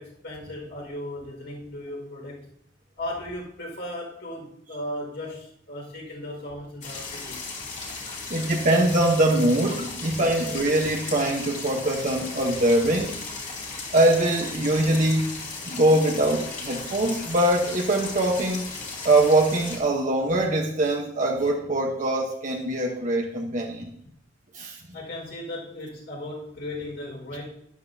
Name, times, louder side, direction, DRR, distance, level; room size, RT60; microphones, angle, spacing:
voice 1, 0.0-2.5 3.0-7.4 10.1-10.2 24.9-27.5, left 1 dB, 65° left, 5.1 m, -36 dB
sound 1, 6.8-19.8, left 3 dB, 40° left, 2.6 m, -36 dB
voice 2, 8.3-13.3 13.9-15.4 15.7-18.7 19.0-23.9 24.5-24.8, right 1 dB, 40° right, 1.1 m, -23 dB
12.5 x 11.5 x 2.8 m
head